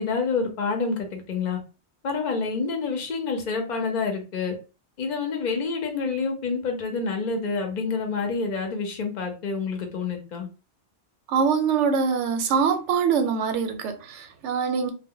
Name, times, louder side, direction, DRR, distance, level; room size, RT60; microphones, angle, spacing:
voice 1, 0.0-1.6 2.0-4.5 5.0-10.5, left 4 dB, 50° left, 0.6 m, -28 dB
voice 2, 11.3-14.9, right 6 dB, 90° right, 0.9 m, -24 dB
2.1 x 2.1 x 3.6 m
omnidirectional pair, 1.2 m